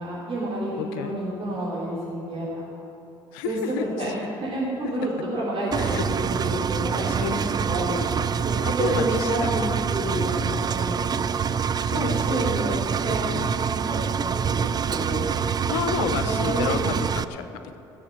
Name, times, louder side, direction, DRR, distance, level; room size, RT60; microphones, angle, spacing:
voice 1, 0.0-2.7 3.4-4.2 4.4-8.1 8.4-9.6 9.9-11.3 12.0-13.3 13.6-15.3 16.0-17.0, right 1 dB, 50° right, -7 dB, 3.7 m, -29 dB
voice 2, 0.8-1.2 3.3-4.1 4.8-4.9 5.8-6.0 7.1-7.4 8.6-9.8 10.4-10.7 11.8-12.4 13.2-13.6 15.6-17.8, left 8 dB, 85° left, 9 dB, 0.8 m, -31 dB
Engine, 5.7-17.2, right 7 dB, 35° right, 0.4 m, -26 dB
16.0 x 7.2 x 7.7 m, 2.8 s
hypercardioid pair, 65°, 12 cm